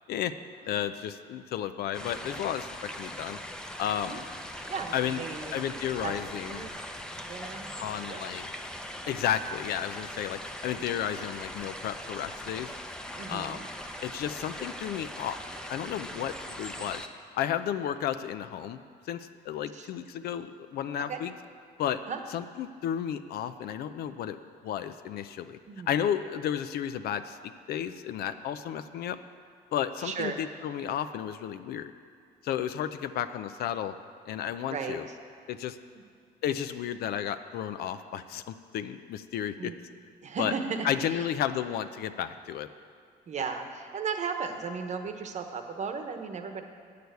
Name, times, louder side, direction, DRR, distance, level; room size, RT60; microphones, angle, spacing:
voice 1, 0.7-2.7 3.0-3.4 3.8-4.2 4.9-5.2 5.5-6.7 7.8-8.5 9.1-12.7 13.3-13.6 14.0-15.4 15.7-17.0 17.3-18.8 19.1-21.3 21.8-22.0 22.3-24.4 24.6-25.6 25.9-29.2 29.7-31.9 32.4-33.9 34.3-35.1 35.5-35.8 36.4-39.7 40.4-40.5 40.8-42.7, left 10 dB, 65° left, 10 dB, 0.5 m, -32 dB
sound 1, 1.9-17.1, left 1 dB, 5° left, 0.7 m, -41 dB
voice 2, 4.7-5.7 6.0-6.7 7.3-7.7 8.1-8.2 13.2-13.6 19.7-19.9 21.1-21.2 22.1-22.2 25.7-25.9 30.0-30.4 34.6-35.0 39.6-39.8 40.2-41.3 43.3-46.6, right 5 dB, 45° right, 6 dB, 1.0 m, -35 dB
9.4 x 6.7 x 8.1 m, 2.2 s
cardioid pair, 110°, 17 cm